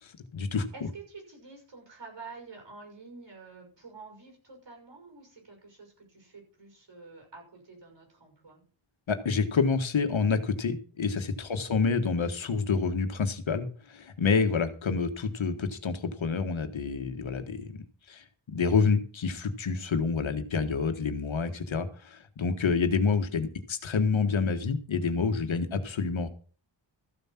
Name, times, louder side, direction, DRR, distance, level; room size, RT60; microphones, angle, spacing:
voice 1, 0.0-0.7 9.1-17.7 18.1-26.3, left 5 dB, 75° left, 7 dB, 1.6 m, -28 dB
voice 2, 0.7-8.6 11.5-11.8 14.4-14.6 25.7-25.9, right 4 dB, 65° right, 2 dB, 6.5 m, -49 dB
14.0 x 7.5 x 5.9 m, 0.41 s
wide cardioid pair, 145°, 47 cm